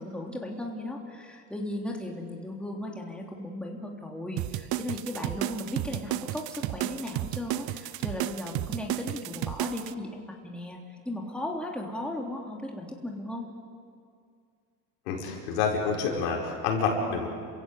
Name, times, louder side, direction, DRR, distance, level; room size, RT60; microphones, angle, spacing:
voice 1, 0.0-13.5, left 1 dB, ahead, 0 dB, 3.2 m, -36 dB
sound 1, 4.4-9.9, right 16 dB, 50° right, 0.8 m, -32 dB
voice 2, 15.1-17.3, left 5 dB, 80° left, -1 dB, 5.5 m, -28 dB
28.5 x 16.0 x 8.0 m, 2.2 s
supercardioid pair, 105°, 47 cm